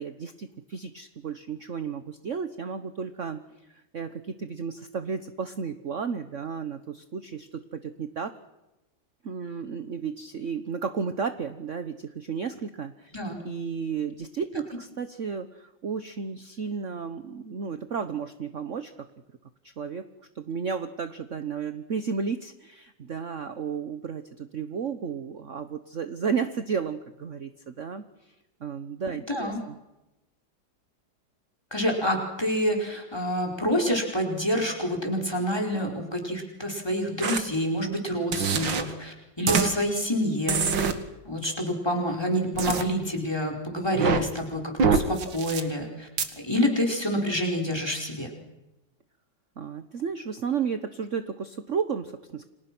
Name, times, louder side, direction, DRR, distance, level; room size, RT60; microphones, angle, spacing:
voice 1, 0.0-3.4 3.7-8.3 9.2-13.1 13.4-18.9 19.8-20.0 20.3-28.3 28.6-29.8 49.6-52.5, right 6 dB, 45° right, 10 dB, 1.3 m, -33 dB
voice 2, 29.3-29.6 31.7-40.7 41.2-46.1 46.4-48.3, equal, 10° left, 2 dB, 4.8 m, -27 dB
sound 1, 37.2-37.4 38.3-38.8 39.5-39.7 40.5-40.9 42.6-42.8 43.9-44.2 44.8-45.6 46.2-46.3, right 5 dB, 75° right, 2.6 m, -24 dB
30.0 x 26.0 x 6.2 m, 0.98 s
omnidirectional pair, 2.1 m